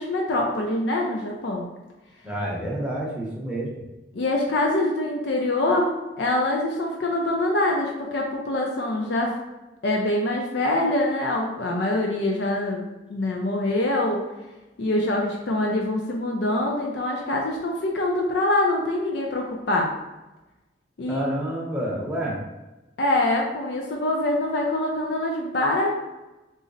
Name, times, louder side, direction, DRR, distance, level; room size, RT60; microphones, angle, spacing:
voice 1, 0.0-1.6 4.1-5.9 6.2-9.3 9.8-12.8 13.1-14.3 14.8-19.9 21.0-21.2 23.0-25.9, left 1 dB, 65° left, 0 dB, 0.4 m, -24 dB
voice 2, 2.2-3.8 21.1-22.4, right 1 dB, 5° right, -5 dB, 0.7 m, -29 dB
3.8 x 2.0 x 3.8 m, 1.1 s
head